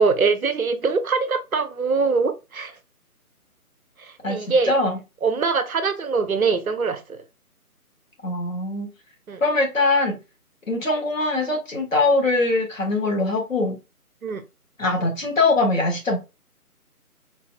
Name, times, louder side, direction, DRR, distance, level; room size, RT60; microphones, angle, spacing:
voice 1, 0.0-2.7 4.3-4.7 5.2-7.2 9.3-9.4 14.2-14.4, right 4 dB, 70° right, 0.7 m, -22 dB
voice 2, 4.2-5.0 8.2-8.9 9.4-10.2 10.7-13.8 14.8-16.2, left 2 dB, 60° left, 1.4 m, -22 dB
3.9 x 2.6 x 2.3 m
figure-of-eight pair, 155°, 45 cm